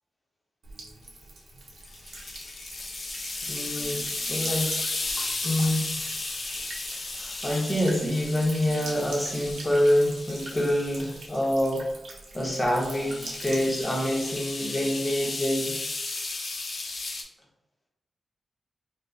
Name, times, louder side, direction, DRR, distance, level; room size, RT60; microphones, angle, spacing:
Buzz / Water tap faucet / Trickle dribble, 0.6-13.8, right 2 dB, 80° right, 0.7 m, -43 dB
sound 1, 1.8-11.3 12.5-17.2, left 3 dB, 55° left, 0.5 m, -34 dB
voice 1, 3.4-4.0 4.3-4.7 5.4-5.9 7.2-11.9 12.3-15.7, left 1 dB, 20° left, -2 dB, 0.9 m, -26 dB
3.7 x 2.6 x 2.4 m, 0.90 s
wide cardioid pair, 95°, 0 cm